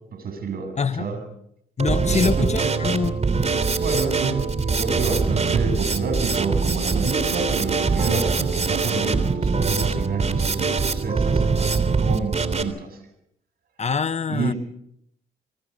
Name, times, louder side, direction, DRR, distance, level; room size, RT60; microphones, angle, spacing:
voice 1, 0.1-0.7 1.0-1.2 2.0-2.7 3.7-11.7 12.0-13.0 14.3-14.6, right 4 dB, 60° right, 7.9 m, -29 dB
voice 2, 0.8-1.1 1.8-3.2 13.8-14.5, left 5 dB, 40° left, 1.2 m, -24 dB
Drum kit, 1.8-12.6, right 4 dB, 40° right, 3.3 m, -23 dB
27.5 x 23.5 x 5.5 m
hypercardioid pair, 55°, 18 cm